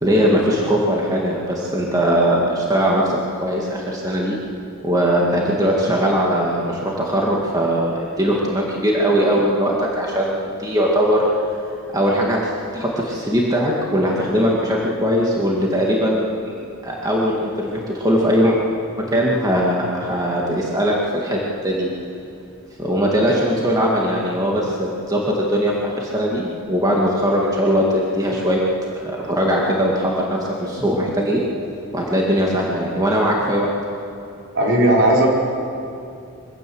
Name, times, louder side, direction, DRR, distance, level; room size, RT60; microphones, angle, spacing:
voice 1, 0.0-4.4 4.8-11.3 11.9-16.3 16.8-18.6 19.1-21.9 22.8-28.6 29.0-31.4 31.9-33.7, equal, 15° right, -3 dB, 2.1 m, -20 dB
voice 2, 34.5-35.3, right 1 dB, 55° right, -3 dB, 5.0 m, -15 dB
23.5 x 16.5 x 7.9 m, 2.6 s
head